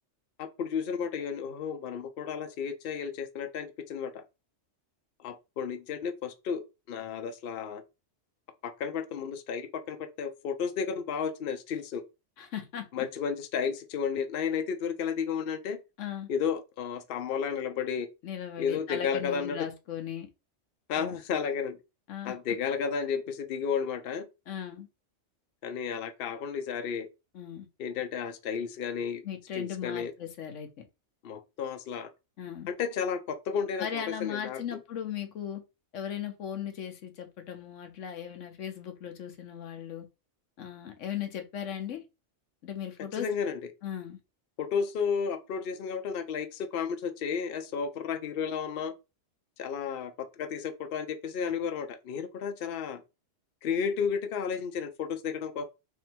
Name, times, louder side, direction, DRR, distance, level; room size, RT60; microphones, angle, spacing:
voice 1, 0.4-4.2 5.2-7.8 8.6-12.0 12.9-15.8 16.3-18.1 18.6-19.6 20.9-21.8 22.2-24.3 25.6-27.1 27.8-29.2 29.5-30.1 31.2-32.1 32.7-34.8 43.1-43.6 44.6-48.9 49.6-53.0 53.6-55.6, left 6 dB, 55° left, 0.8 m, -32 dB
voice 2, 12.4-12.9 16.0-16.3 18.2-20.3 21.0-21.1 22.1-22.3 24.5-24.9 27.3-27.7 29.2-30.9 32.4-32.7 33.8-35.6 35.9-40.1 40.6-42.0 42.6-43.3 43.8-44.2, left 9 dB, 80° left, 1.1 m, -37 dB
3.5 x 2.6 x 4.3 m
omnidirectional pair, 1.2 m